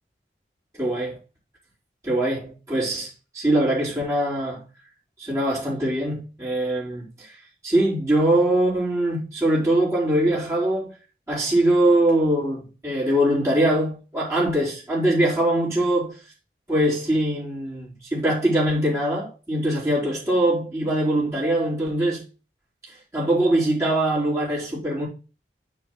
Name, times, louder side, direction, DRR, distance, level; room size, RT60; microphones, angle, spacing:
voice 1, 0.8-1.2 2.0-4.6 5.2-7.4 7.6-11.0 11.3-16.2 16.7-22.2 23.1-25.1, right 1 dB, 15° right, 4.2 m, -22 dB
6.9 x 4.7 x 6.2 m
head